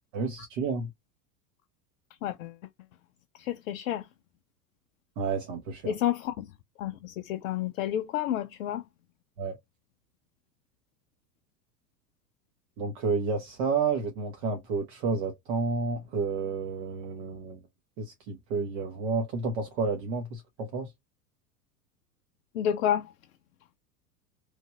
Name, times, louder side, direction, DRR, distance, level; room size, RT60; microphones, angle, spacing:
voice 1, 0.1-0.9 5.2-5.9 9.4-9.6 12.8-17.6 18.0-20.9, right 4 dB, 45° right, 0.8 m, -30 dB
voice 2, 2.2-2.6 3.3-4.1 5.8-6.5 6.8-8.8 22.5-23.1, left 10 dB, 60° left, 0.5 m, -30 dB
3.2 x 2.5 x 2.3 m
figure-of-eight pair, 85°, 48 cm